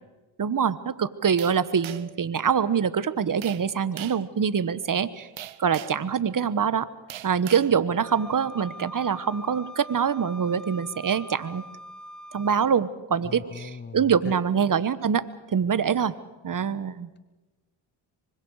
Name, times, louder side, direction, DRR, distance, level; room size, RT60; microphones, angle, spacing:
voice 1, 0.4-5.3 5.6-6.9 7.2-11.6 12.3-16.1 16.4-17.1, right 7 dB, 40° right, 15 dB, 1.3 m, -25 dB
sound 1, 1.4-2.2 3.4-3.7 4.0-4.3 5.4-6.1 7.1-7.7, right 12 dB, 65° right, 1.2 m, -40 dB
Wind instrument woodwind instrument, 8.0-12.7, left 1 dB, ahead, 3.0 m, -43 dB
voice 2, 13.2-14.4, left 4 dB, 20° left, 12 dB, 1.0 m, -39 dB
26.5 x 24.5 x 4.9 m, 1.1 s
cardioid pair, 70°, 49 cm